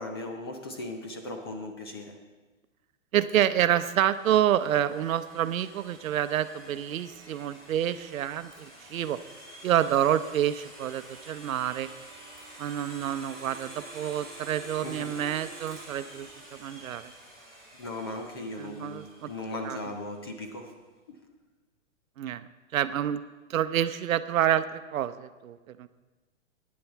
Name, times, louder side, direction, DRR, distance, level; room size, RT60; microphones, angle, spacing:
voice 1, 0.0-2.2 14.8-15.2 17.7-20.7 21.1-21.2, left 2 dB, 20° left, 4 dB, 0.5 m, -38 dB
voice 2, 3.1-9.2 9.6-11.9 12.6-17.1 18.6-19.3 19.7-19.8 22.2-23.2 23.5-25.9, right 11 dB, 85° right, 13 dB, 0.7 m, -28 dB
Domestic sounds home sounds, 3.3-20.1, right 1 dB, ahead, 3.1 m, -48 dB
13.0 x 9.5 x 4.5 m, 1.3 s
hypercardioid pair, 175°, 40 cm